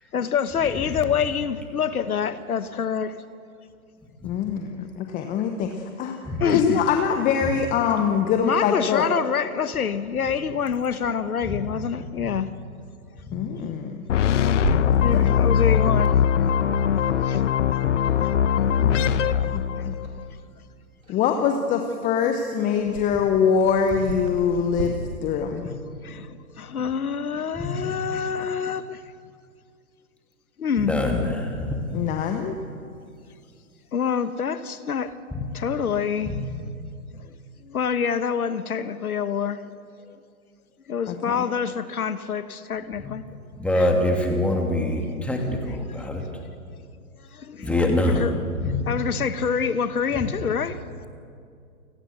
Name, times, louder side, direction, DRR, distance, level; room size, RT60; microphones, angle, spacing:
voice 1, 0.1-3.2 6.4-6.9 8.4-12.5 15.0-16.1 17.2-17.4 26.0-29.0 30.6-30.9 33.9-35.2 35.5-36.4 37.2-37.4 37.6-39.6 40.1-40.2 40.9-43.2 43.7-43.9 47.3-51.1, left 7 dB, 75° left, 13 dB, 1.2 m, -26 dB
voice 2, 4.2-6.2 6.5-9.1 13.3-14.0 15.0-15.4 18.7-19.1 19.5-19.9 21.1-24.9 25.2-25.7 31.9-32.6 41.1-41.4, left 7 dB, 20° left, 5 dB, 1.1 m, -24 dB
sound 1, 14.1-20.2, left 8 dB, 55° left, 1.1 m, -21 dB
Clock, 14.4-24.8, right 4 dB, 60° right, 5.0 m, -37 dB
voice 3, 30.8-31.8 35.3-35.5 36.2-36.4 43.0-43.1 43.6-46.2 47.6-48.3 48.6-48.7 50.1-50.2, left 1 dB, 5° left, 1 dB, 2.7 m, -25 dB
29.0 x 18.0 x 6.8 m, 2.4 s
hypercardioid pair, 130°, 45 cm